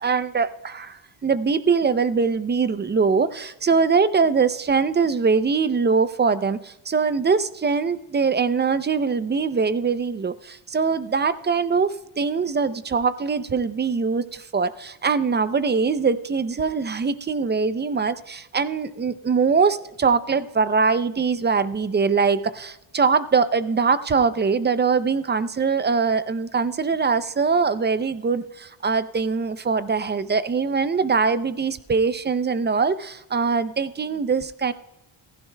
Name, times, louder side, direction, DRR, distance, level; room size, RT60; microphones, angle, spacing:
voice 1, 0.0-34.7, right 5 dB, 25° right, 14 dB, 0.4 m, -22 dB
15.5 x 15.0 x 2.2 m, 0.87 s
cardioid pair, 135°, 49 cm